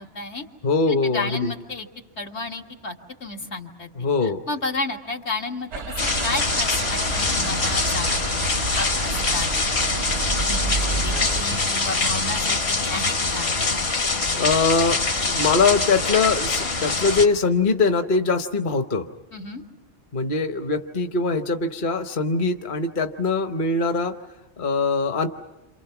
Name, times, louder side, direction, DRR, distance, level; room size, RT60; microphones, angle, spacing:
voice 1, 0.0-0.5 0.9-1.9 2.2-3.0 3.2-3.9 4.2-8.5 8.7-9.5 10.1-13.6 19.3-19.6, left 3 dB, 80° left, 1 dB, 2.2 m, -32 dB
voice 2, 0.6-1.5 4.0-4.4 14.3-15.0 15.3-19.1 20.1-24.1 24.6-25.3, left 4 dB, 50° left, 7 dB, 1.1 m, -22 dB
sound 1, 5.7-11.4, right 4 dB, 90° right, 1.3 m, -30 dB
sound 2, 6.0-17.3, left 3 dB, 65° left, 1.9 m, -24 dB
29.0 x 27.5 x 5.9 m, 1.0 s
omnidirectional pair, 1.1 m